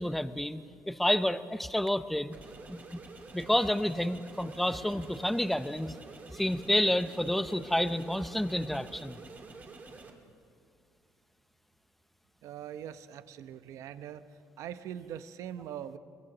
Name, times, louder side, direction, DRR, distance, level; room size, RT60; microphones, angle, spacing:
voice 1, 0.0-2.4 2.7-3.0 3.3-5.9 6.3-9.2, left 1 dB, 5° left, 12 dB, 0.6 m, -29 dB
sound 1, 2.3-10.1, right 3 dB, 30° right, 2.2 m, -49 dB
voice 2, 12.4-14.2 14.6-16.0, right 10 dB, 70° right, 12 dB, 0.9 m, -42 dB
23.0 x 21.0 x 6.2 m, 2.4 s
cardioid pair, 135°, 5 cm